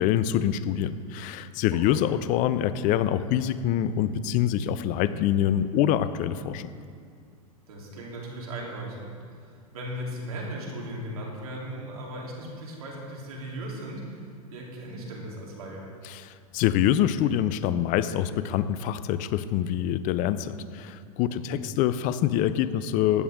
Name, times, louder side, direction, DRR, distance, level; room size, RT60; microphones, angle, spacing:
voice 1, 0.0-6.7 16.0-23.2, left 11 dB, 45° left, 14 dB, 0.5 m, -25 dB
voice 2, 7.7-14.2 14.5-15.9 21.3-21.6, right 1 dB, 80° right, -3 dB, 3.3 m, -37 dB
15.0 x 10.5 x 3.6 m, 2.2 s
hypercardioid pair, 100°, 19 cm